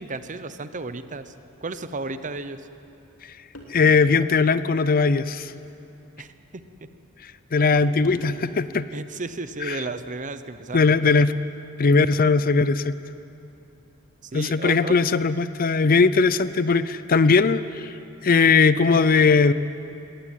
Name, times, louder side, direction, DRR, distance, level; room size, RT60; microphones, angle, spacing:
voice 1, 0.0-1.3 1.6-2.7 6.2-6.3 8.9-11.0 14.2-15.0, right 3 dB, 35° right, 11 dB, 0.9 m, -33 dB
sound 1, 3.5-4.1 5.5-5.8 7.7-8.5, left 1 dB, 80° left, 3.2 m, -42 dB
voice 2, 3.7-5.5 7.5-8.9 9.7-9.8 10.7-11.3 11.8-13.0 14.3-17.9 18.2-19.5, left 4 dB, 45° left, 15 dB, 0.5 m, -19 dB
20.0 x 18.0 x 9.2 m, 2.7 s
head